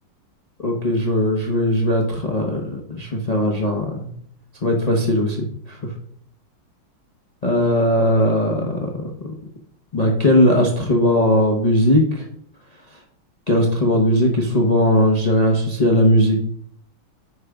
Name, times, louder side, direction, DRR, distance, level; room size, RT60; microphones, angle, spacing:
voice 1, 0.6-4.1 4.6-5.8 7.4-9.3 9.9-12.2 12.9-13.0 13.5-16.4, left 1 dB, 80° left, 0 dB, 0.3 m, -19 dB
9.3 x 5.0 x 3.4 m, 0.65 s
omnidirectional pair, 2.3 m